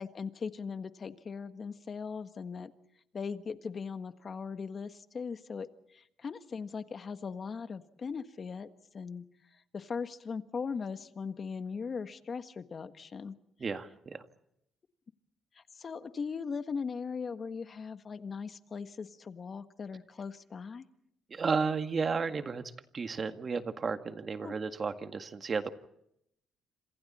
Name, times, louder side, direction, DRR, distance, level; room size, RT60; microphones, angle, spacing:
voice 1, 0.0-2.7 3.1-8.7 8.9-9.2 9.7-13.3 15.5-20.9 24.4-24.5, left 5 dB, 40° left, 10 dB, 1.5 m, -39 dB
voice 2, 13.6-14.2 21.3-22.6 22.9-25.7, right 5 dB, 40° right, 8 dB, 1.9 m, -33 dB
28.0 x 26.5 x 4.3 m, 0.77 s
cardioid pair, 90°, 0 cm